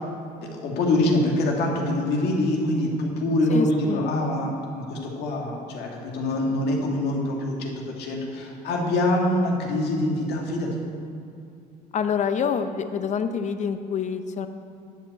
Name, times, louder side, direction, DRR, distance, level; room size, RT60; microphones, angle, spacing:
voice 1, 0.4-10.7, left 1 dB, 75° left, -1 dB, 1.9 m, -25 dB
voice 2, 3.5-4.1 11.9-14.5, left 6 dB, 45° left, 9 dB, 0.7 m, -26 dB
10.5 x 5.3 x 7.5 m, 2.5 s
cardioid pair, 110°, 17 cm